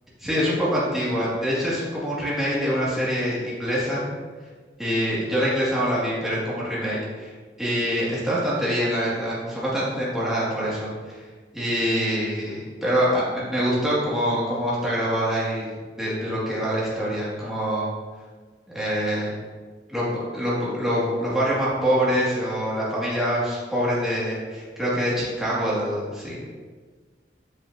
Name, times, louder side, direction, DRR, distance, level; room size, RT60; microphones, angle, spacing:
voice 1, 0.2-4.0 4.8-7.3 7.6-11.2 11.5-15.7 16.0-17.9 18.7-19.3 19.9-26.6, equal, ahead, -9 dB, 2.3 m, -25 dB
8.2 x 7.3 x 2.8 m, 1.5 s
head